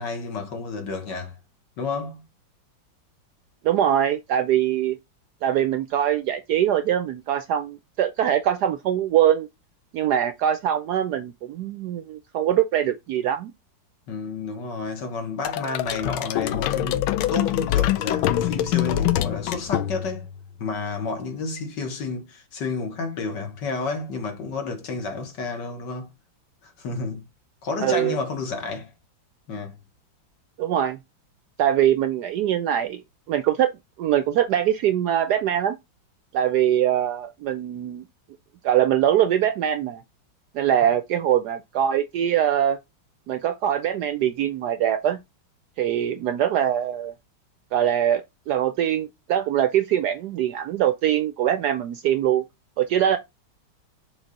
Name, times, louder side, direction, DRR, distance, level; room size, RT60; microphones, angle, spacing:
voice 1, 0.0-1.4 1.8-2.2 14.1-20.3 20.6-26.1 26.6-27.3 27.6-28.9 29.5-29.8, left 4 dB, 65° left, 2.0 m, -31 dB
voice 2, 3.6-5.0 5.4-9.5 9.9-13.5 27.8-28.2 30.6-31.0 31.6-33.0 33.3-35.8 36.3-38.0 38.6-40.0 40.5-42.8 43.3-45.2 45.8-47.1 47.7-52.4 52.8-53.2, right 10 dB, 75° right, 0.9 m, -23 dB
sound 1, 15.4-20.3, left 13 dB, 90° left, 1.4 m, -24 dB
7.0 x 3.7 x 4.1 m
omnidirectional pair, 2.1 m